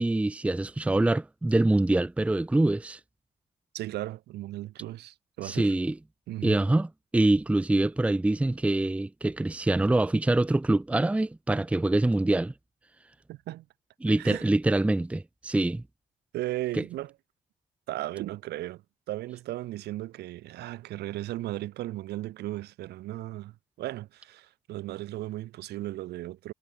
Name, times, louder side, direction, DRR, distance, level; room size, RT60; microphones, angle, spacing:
voice 1, 0.0-3.0 5.4-5.9 6.4-6.9 7.1-12.5 14.0-15.8 16.7-16.8, right 2 dB, 5° right, 0.8 m, -25 dB
voice 2, 3.7-5.7 6.3-6.6 13.3-13.7 14.2-14.5 16.3-17.1 17.9-26.5, right 15 dB, 75° right, 4.8 m, -36 dB
cardioid pair, 110°, 17 cm